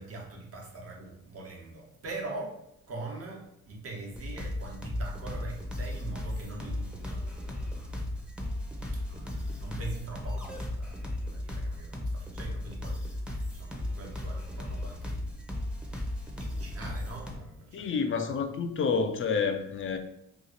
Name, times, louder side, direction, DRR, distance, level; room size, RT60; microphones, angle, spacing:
voice 1, 0.0-2.6 2.9-8.3 8.7-13.0 13.4-15.5 15.8-17.9, right 2 dB, 50° right, 1.1 m, -43 dB
sound 1, 4.1-17.4, left 1 dB, 5° right, 0.7 m, -35 dB
voice 2, 17.7-20.0, left 5 dB, 45° left, 0.5 m, -29 dB
3.0 x 2.4 x 3.9 m
cardioid pair, 90°, 30 cm